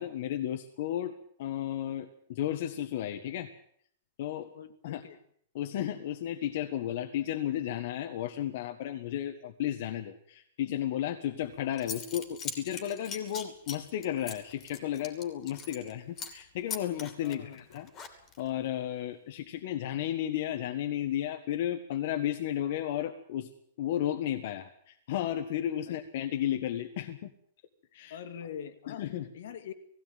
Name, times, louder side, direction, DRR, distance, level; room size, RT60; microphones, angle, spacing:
voice 1, 0.0-3.5 4.2-4.5 4.8-5.0 5.5-17.9 18.4-23.5 23.8-27.2 27.9-28.2 28.9-29.3, left 11 dB, 50° left, 6 dB, 1.6 m, -33 dB
voice 2, 4.5-5.2 17.2-17.6 25.9-26.0 28.1-29.0 29.3-29.7, left 8 dB, 65° left, 10 dB, 2.4 m, -43 dB
Zipper (clothing) / Coin (dropping), 11.4-11.5 11.8-15.9 16.2-16.4 16.7-18.5, left 6 dB, 20° left, 2.8 m, -41 dB
18.5 x 16.5 x 9.4 m, 0.66 s
supercardioid pair, 165°, 0 cm